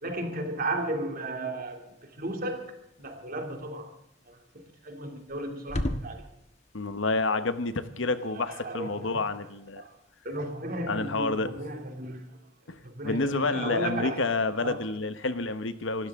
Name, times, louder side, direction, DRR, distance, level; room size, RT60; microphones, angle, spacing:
voice 1, 0.0-3.9 4.3-4.4 4.8-6.3 8.5-9.2 9.8-10.0 10.2-12.3 12.8-14.8, right 1 dB, 50° right, 2.7 m, -34 dB
sound 1, 1.6-10.6, left 1 dB, 35° left, 1.3 m, -42 dB
voice 2, 6.7-9.8 10.9-11.5 12.7-16.1, left 3 dB, 80° left, 1.1 m, -29 dB
25.5 x 13.0 x 3.7 m
head